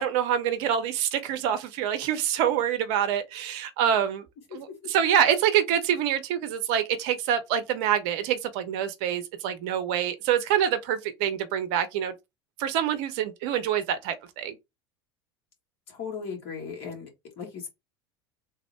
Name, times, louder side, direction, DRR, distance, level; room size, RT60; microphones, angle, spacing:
voice 1, 0.0-4.3 4.5-12.1 12.6-14.6, right 9 dB, 55° right, 0.7 m, -26 dB
voice 2, 4.5-4.9 15.9-17.1 17.4-17.7, left 6 dB, 55° left, 1.8 m, -37 dB
3.5 x 2.1 x 4.3 m
figure-of-eight pair, 75°, 14 cm